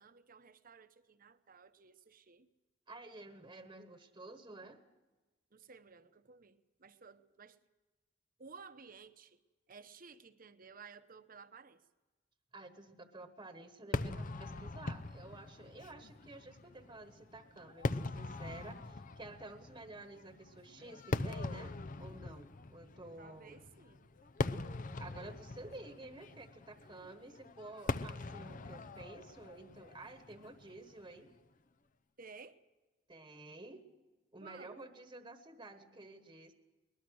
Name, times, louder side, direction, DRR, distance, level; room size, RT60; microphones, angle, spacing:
voice 1, 0.0-2.5 5.5-7.6 8.4-9.4 9.7-11.8 23.2-24.1 32.2-32.6 34.4-34.9, right 5 dB, 50° right, 10 dB, 1.0 m, -55 dB
voice 2, 2.9-4.8 12.5-23.6 25.0-31.3 33.1-33.9 34.3-36.5, right 2 dB, 25° right, 7 dB, 1.3 m, -51 dB
Fireworks, 13.9-31.3, left 3 dB, 45° left, 0.7 m, -42 dB
22.0 x 20.5 x 6.4 m, 1.2 s
head